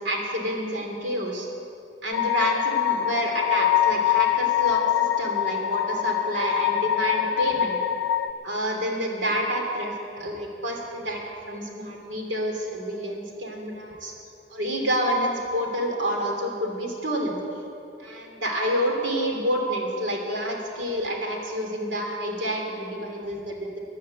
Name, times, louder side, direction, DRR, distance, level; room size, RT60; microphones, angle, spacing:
voice 1, 0.0-1.5 2.0-7.8 8.4-14.1 14.5-17.4 18.0-23.8, equal, 75° right, 1 dB, 2.9 m, -28 dB
sound 1, 2.1-8.3, left 11 dB, 85° left, 0.5 m, -24 dB
14.0 x 10.5 x 8.6 m, 2.7 s
head